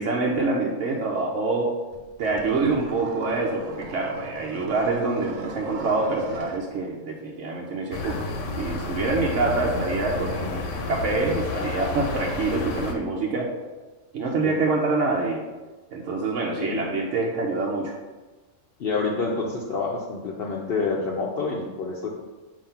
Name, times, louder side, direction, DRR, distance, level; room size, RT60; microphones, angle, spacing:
voice 1, 0.0-1.7 2.2-8.2 8.6-13.5 14.1-15.4 15.9-18.0, right 3 dB, 90° right, -2 dB, 1.1 m, -26 dB
sound 1, 1.9-6.6, right 3 dB, 50° right, 0.6 m, -39 dB
sound 2, 7.9-12.9, left 3 dB, 85° left, 1.1 m, -30 dB
voice 2, 18.8-22.1, left 4 dB, 60° left, -2 dB, 0.8 m, -28 dB
7.2 x 2.8 x 5.5 m, 1.3 s
omnidirectional pair, 1.2 m